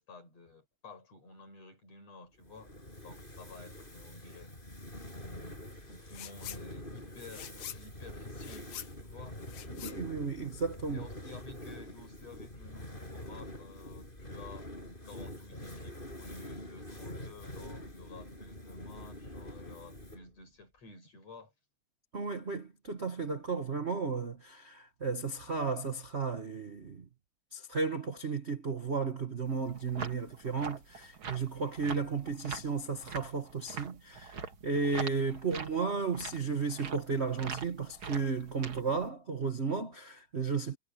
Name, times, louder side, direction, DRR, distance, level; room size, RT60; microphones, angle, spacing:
voice 1, 0.0-2.7 3.0-4.5 5.1-5.6 5.9-9.4 10.9-14.7 15.0-21.5, left 3 dB, 50° left, 9.3 m, -52 dB
Fire, 2.4-20.4, left 1 dB, 15° left, 7.1 m, -46 dB
sound 1, 6.1-6.6 7.0-10.9, left 11 dB, 85° left, 3.0 m, -46 dB
voice 2, 9.7-11.0 22.1-27.1 27.5-40.8, right 4 dB, 60° right, 0.6 m, -34 dB
sound 2, 29.5-39.1, right 6 dB, 45° right, 2.4 m, -44 dB
omnidirectional pair, 3.7 m